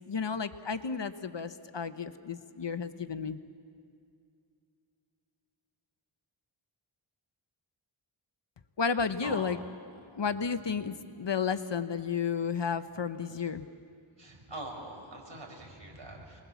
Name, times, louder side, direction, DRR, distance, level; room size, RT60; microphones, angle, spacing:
voice 1, 0.1-3.4 8.8-9.6 10.1-13.7, left 6 dB, 60° left, 11 dB, 1.0 m, -32 dB
voice 2, 14.2-16.4, right 2 dB, 60° right, 0 dB, 5.6 m, -43 dB
26.0 x 21.0 x 7.2 m, 2.3 s
wide cardioid pair, 45°, 50 cm